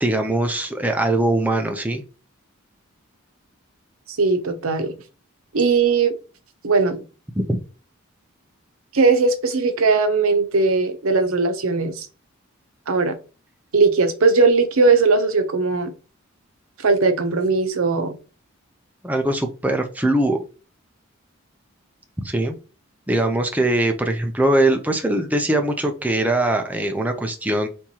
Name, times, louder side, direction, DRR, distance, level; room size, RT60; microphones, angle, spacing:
voice 1, 0.0-2.0 19.0-20.4 22.2-22.6 23.1-27.7, right 1 dB, 5° right, 0.5 m, -21 dB
voice 2, 4.1-4.9 5.5-6.2 6.6-7.0 8.9-12.1 12.9-13.2 13.7-15.9 16.8-18.1, right 4 dB, 80° right, 0.8 m, -19 dB
4.5 x 3.5 x 2.9 m
head